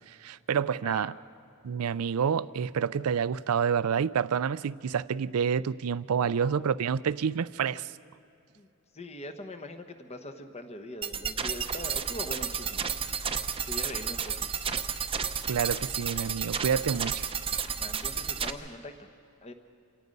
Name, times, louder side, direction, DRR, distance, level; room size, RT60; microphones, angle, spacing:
voice 1, 0.1-1.1 1.6-7.9 15.5-17.2, right 7 dB, 80° right, 18 dB, 0.4 m, -28 dB
voice 2, 6.1-6.8 8.6-8.7 8.9-12.8 13.7-14.5 17.8-18.9 19.4-19.5, left 1 dB, 30° left, 8 dB, 1.1 m, -42 dB
sound 1, 11.0-18.5, right 7 dB, 25° right, 0.7 m, -32 dB
27.5 x 17.5 x 5.4 m, 2.7 s
head